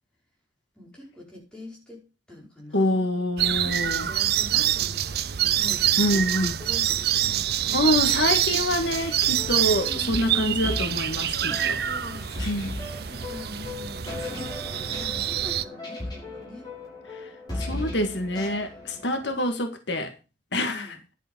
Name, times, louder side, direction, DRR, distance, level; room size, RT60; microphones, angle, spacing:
voice 1, 0.8-3.0 3.4-6.2 6.6-7.8 9.7-10.3 11.3-12.3 13.1-16.7 20.7-21.0, left 1 dB, 5° left, 5.3 m, -43 dB
voice 2, 2.7-4.1 6.0-6.5 7.7-11.8 12.4-12.7 17.5-20.1 20.5-21.0, left 1 dB, 75° left, 1.9 m, -26 dB
sound 1, 3.4-15.6, right 11 dB, 55° right, 0.6 m, -26 dB
sound 2, 7.9-19.4, left 2 dB, 25° left, 6.3 m, -37 dB
11.0 x 7.3 x 5.4 m
head